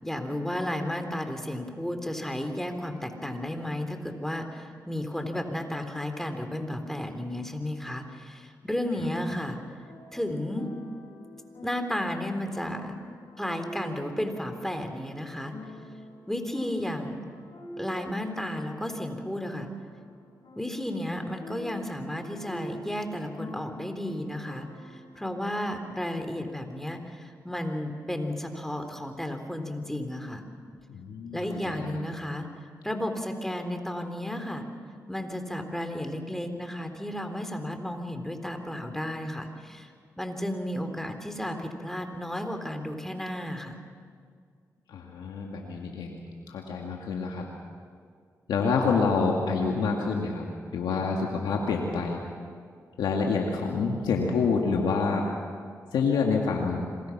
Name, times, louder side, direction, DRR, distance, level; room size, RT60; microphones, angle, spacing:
voice 1, 0.0-9.6 10.1-10.7 11.6-13.0 13.4-15.5 16.3-17.2 17.8-19.7 20.6-30.5 31.3-32.5 32.8-34.7 35.1-39.9 40.2-43.8, left 1 dB, 5° left, 6 dB, 3.6 m, -33 dB
sound 1, 9.9-25.4, equal, 65° left, 7.3 m, -46 dB
voice 2, 30.9-31.8 44.9-46.2 46.5-47.5 48.5-50.5 50.7-52.2 53.0-55.3 55.9-56.9, left 4 dB, 85° left, 0 dB, 2.1 m, -27 dB
26.5 x 21.5 x 6.0 m, 2.1 s
supercardioid pair, 45°, 7 cm